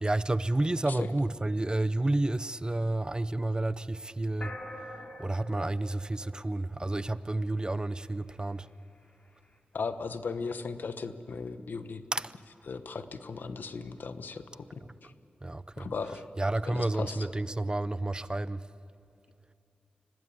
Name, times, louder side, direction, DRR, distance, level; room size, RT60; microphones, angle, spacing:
voice 1, 0.0-4.6 5.2-8.7 12.1-12.3 15.4-15.9 16.4-18.7, right 2 dB, 25° right, 0.7 m, -30 dB
sound 1, 4.4-7.0, left 1 dB, 45° left, 2.9 m, -44 dB
voice 2, 9.7-12.0 12.6-15.1 15.8-16.2 16.6-17.3, left 4 dB, 75° left, 1.0 m, -37 dB
24.5 x 18.0 x 8.6 m
cardioid pair, 45°, 3 cm